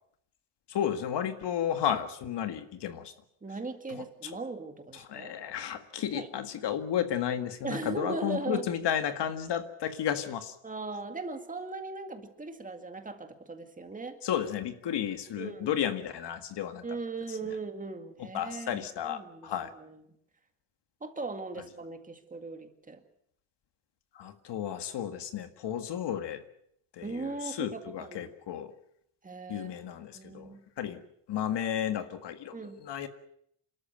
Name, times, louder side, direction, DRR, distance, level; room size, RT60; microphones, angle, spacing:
voice 1, 0.7-3.1 3.9-4.4 4.9-10.6 14.2-16.8 17.3-17.4 18.2-19.7 24.1-26.4 26.9-28.7 29.5-31.0 31.3-33.1, left 9 dB, 65° left, 9 dB, 1.9 m, -33 dB
voice 2, 3.4-5.3 6.1-6.3 7.6-8.6 10.6-14.2 15.4-15.7 16.8-19.5 19.8-20.0 21.0-23.0 27.0-28.3 29.2-29.7 30.1-30.6 32.5-32.8, right 3 dB, 15° right, 6 dB, 2.0 m, -38 dB
27.5 x 13.0 x 9.1 m, 0.72 s
cardioid pair, 170°, 45 cm